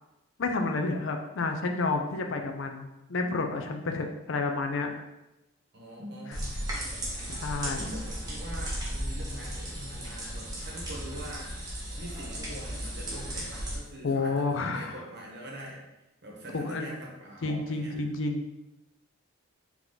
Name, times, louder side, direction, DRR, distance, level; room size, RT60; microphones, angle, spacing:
voice 1, 0.4-4.9 7.3-7.8 14.0-15.0 16.5-16.9 17.4-18.4, left 3 dB, 65° left, 4 dB, 0.5 m, -30 dB
voice 2, 5.7-6.6 7.6-11.5 12.0-15.8 16.2-18.0, equal, 50° right, -2 dB, 1.0 m, -43 dB
sound 1, 6.3-13.7, right 1 dB, 20° right, 0.9 m, -35 dB
3.8 x 3.0 x 3.8 m, 0.95 s
head